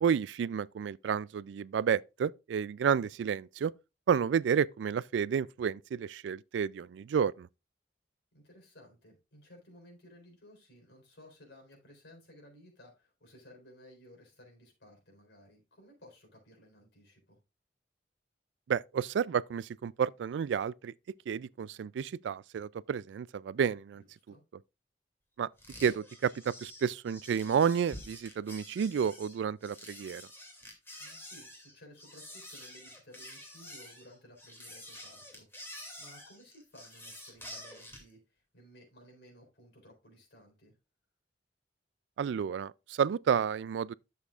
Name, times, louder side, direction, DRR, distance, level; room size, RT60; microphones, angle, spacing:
voice 1, 0.0-3.7 4.1-7.5 18.7-20.9 21.3-24.0 25.4-25.5 25.8-30.2 42.2-43.9, right 7 dB, 85° right, 0.3 m, -31 dB
voice 2, 8.3-17.4 23.9-24.4 31.0-40.7, equal, 90° left, 4.1 m, -57 dB
sound 1, 25.6-38.1, left 1 dB, 15° left, 2.4 m, -48 dB
11.5 x 6.9 x 2.4 m
head